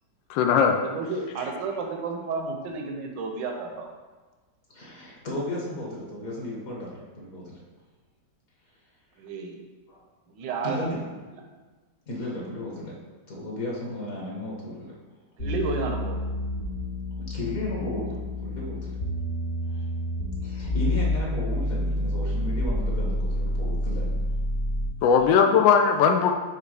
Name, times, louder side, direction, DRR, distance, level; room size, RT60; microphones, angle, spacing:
voice 1, 0.3-0.8 25.0-26.3, left 6 dB, 85° left, 5 dB, 1.3 m, -19 dB
voice 2, 0.8-3.9 9.2-9.6 10.3-11.0 11.3-11.4 15.4-16.2 25.2-25.4, right 4 dB, 80° right, 3 dB, 1.5 m, -32 dB
voice 3, 4.7-7.6 9.9-10.0 10.6-11.0 12.1-12.9 13.3-14.9 17.3-18.9 20.4-24.2, left 1 dB, 50° left, -3 dB, 1.7 m, -34 dB
sound 1, 15.4-25.0, left 1 dB, 70° left, 2.3 m, -28 dB
6.6 x 3.4 x 4.9 m, 1.3 s
omnidirectional pair, 1.9 m